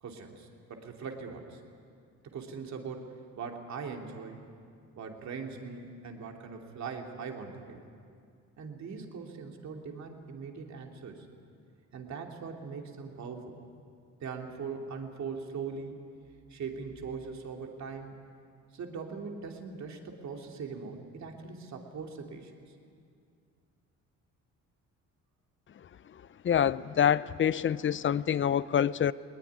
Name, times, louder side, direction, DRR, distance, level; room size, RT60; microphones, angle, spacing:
voice 1, 0.0-1.6 2.2-3.1 3.4-4.4 5.0-7.8 8.6-11.3 11.9-13.6 14.2-16.0 16.5-18.2 18.7-22.5, right 5 dB, 65° right, 2 dB, 3.0 m, -41 dB
voice 2, 26.4-29.1, left 9 dB, 40° left, 18 dB, 0.6 m, -26 dB
20.5 x 20.0 x 9.7 m, 2.3 s
cardioid pair, 90°, 30 cm